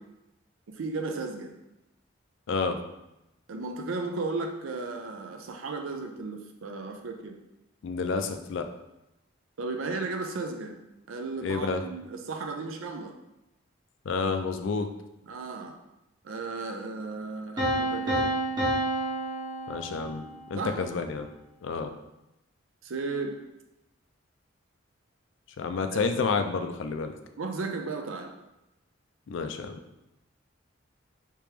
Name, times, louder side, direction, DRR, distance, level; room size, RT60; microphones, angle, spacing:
voice 1, 0.8-1.5 3.5-7.3 9.6-10.7 11.1-13.1 15.3-15.7 16.2-18.3 20.6-20.8 22.8-23.3 27.4-28.3, right 3 dB, 85° right, 4 dB, 0.5 m, -34 dB
voice 2, 7.8-8.7 11.4-11.8 14.1-14.9 19.7-21.3 21.6-21.9 25.6-27.1 29.3-29.8, left 4 dB, 65° left, 7 dB, 0.4 m, -29 dB
Piano, 17.6-20.5, right 1 dB, 20° right, 0.8 m, -29 dB
3.4 x 2.9 x 3.3 m, 0.92 s
head